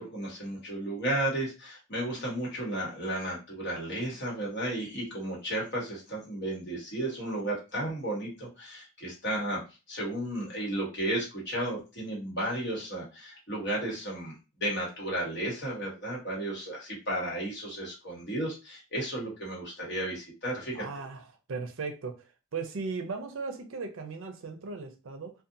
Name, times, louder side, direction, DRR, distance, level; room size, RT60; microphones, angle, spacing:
voice 1, 0.0-9.6 9.9-20.8, right 1 dB, 50° left, 1.1 m, -33 dB
voice 2, 20.7-22.3 22.5-25.3, right 4 dB, 70° right, 0.5 m, -37 dB
2.7 x 2.2 x 2.5 m
head